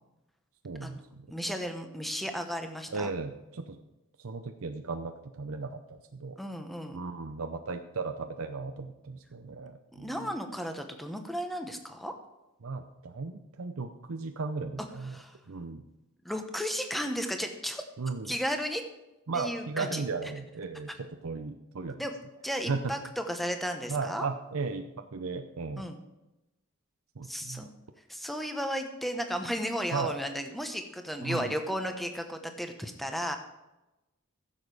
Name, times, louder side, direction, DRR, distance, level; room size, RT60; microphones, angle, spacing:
voice 1, 0.6-1.3 2.9-3.8 4.2-6.4 6.9-10.3 12.6-15.2 15.5-15.8 18.0-18.3 19.3-22.0 22.7-22.9 23.9-25.9 27.2-27.7 29.9-30.2 31.2-31.5, right 4 dB, 80° right, 6 dB, 0.7 m, -36 dB
voice 2, 1.3-3.1 6.4-7.0 9.9-12.1 15.1-15.4 16.2-17.8 18.2-18.8 19.3-20.0 22.0-22.1 22.4-24.3 25.8-26.0 27.3-27.7 28.1-33.4, equal, ahead, 5 dB, 1.0 m, -34 dB
15.0 x 7.3 x 4.9 m, 0.98 s
head